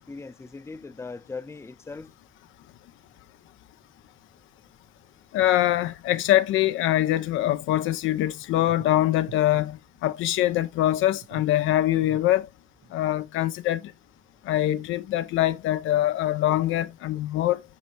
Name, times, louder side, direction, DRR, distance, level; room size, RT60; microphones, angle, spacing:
voice 1, 0.0-2.1, left 4 dB, 15° left, 0.5 m, -39 dB
voice 2, 5.3-12.5 12.9-13.9 14.4-17.6, left 14 dB, 85° left, 0.5 m, -23 dB
sound 1, 8.0-8.1 8.6-9.7 10.0-10.1 10.5-10.6 11.0-11.6 12.0-12.2 12.8-12.9, right 11 dB, 60° right, 0.7 m, -45 dB
8.4 x 4.5 x 2.8 m
cardioid pair, 90°, 20 cm